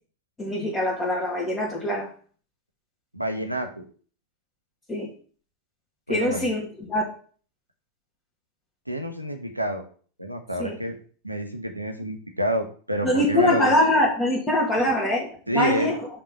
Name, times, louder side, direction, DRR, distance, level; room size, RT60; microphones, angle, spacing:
voice 1, 0.4-2.1 4.9-5.1 6.1-7.1 10.6-10.8 13.0-16.1, left 1 dB, 15° left, 1.8 m, -23 dB
voice 2, 3.1-3.8 6.1-6.5 8.9-9.8 10.2-11.0 11.2-13.7 15.5-15.9, equal, 90° right, 1.0 m, -28 dB
5.3 x 3.7 x 5.9 m
figure-of-eight pair, 90°, 0 cm